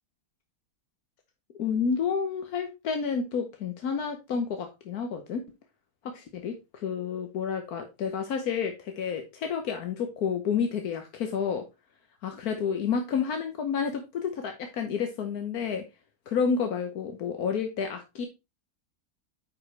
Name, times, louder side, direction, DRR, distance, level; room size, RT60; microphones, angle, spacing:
voice 1, 1.6-5.4 6.0-11.6 12.2-15.8 16.3-18.3, left 6 dB, 80° left, 5 dB, 1.5 m, -30 dB
8.9 x 4.9 x 3.2 m, 0.24 s
omnidirectional pair, 1.6 m